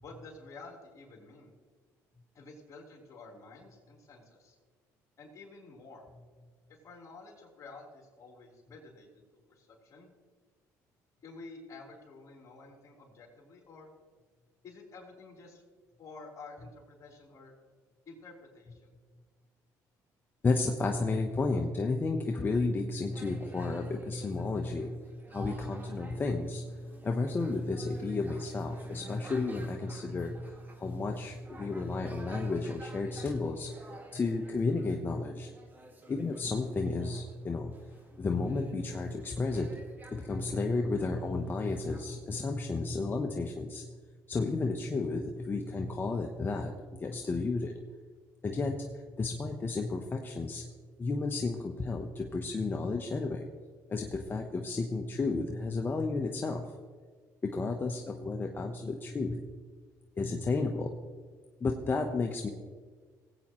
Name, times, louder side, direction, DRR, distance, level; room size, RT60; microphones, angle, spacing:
voice 1, 0.0-1.5 2.3-4.6 5.2-6.0 6.7-9.1 9.5-10.1 11.2-13.9 14.6-15.6 16.0-17.5 18.1-18.9, left 3 dB, 45° left, -1 dB, 3.6 m, -50 dB
voice 2, 20.4-25.0 25.3-26.6 27.0-30.4 30.8-33.7 34.1-35.5 36.1-37.7 38.2-39.7 40.1-43.8 44.3-46.7 47.0-47.7 48.4-48.8 49.2-50.6 51.0-53.4 53.9-56.6 57.4-59.4 60.2-60.9 61.6-62.5, left 3 dB, 30° left, 3 dB, 0.9 m, -32 dB
sound 1, 23.1-42.4, right 2 dB, 25° right, 1.9 m, -53 dB
19.0 x 8.6 x 3.1 m, 1.5 s
cardioid pair, 95°, 7 cm